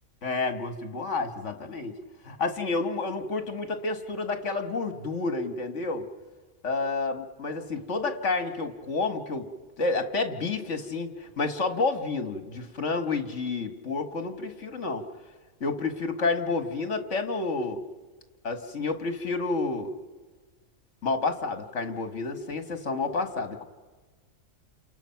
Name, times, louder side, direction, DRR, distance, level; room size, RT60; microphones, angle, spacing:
voice 1, 0.2-2.0 2.2-6.1 6.6-9.5 9.8-15.1 15.6-17.8 18.4-19.9 21.0-23.6, left 3 dB, 60° left, 7 dB, 2.1 m, -30 dB
29.5 x 28.0 x 5.9 m, 1.4 s
omnidirectional pair, 1.4 m